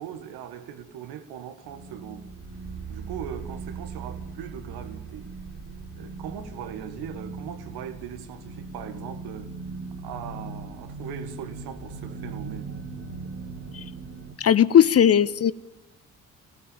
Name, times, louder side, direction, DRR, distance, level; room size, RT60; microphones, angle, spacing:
voice 1, 0.0-2.3 2.9-5.3 6.0-9.5 10.0-12.8, right 9 dB, 60° right, 2.0 m, -39 dB
sound 1, 1.6-14.4, right 4 dB, 30° right, 3.5 m, -39 dB
voice 2, 14.4-15.5, left 9 dB, 35° left, 0.7 m, -18 dB
25.5 x 18.5 x 8.9 m
figure-of-eight pair, 45°, 43 cm